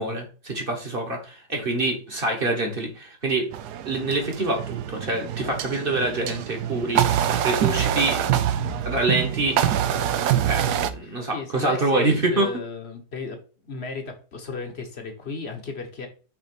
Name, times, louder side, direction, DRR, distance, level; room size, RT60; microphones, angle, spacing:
voice 1, 0.0-3.5 3.8-7.1 7.4-8.2 8.8-9.6 10.4-12.5, right 2 dB, 30° right, 3 dB, 1.3 m, -25 dB
sound 1, 3.5-10.9, right 10 dB, 70° right, 1.0 m, -25 dB
voice 2, 11.0-16.1, left 4 dB, 40° left, 4 dB, 1.2 m, -35 dB
6.0 x 3.9 x 6.1 m, 0.37 s
omnidirectional pair, 2.2 m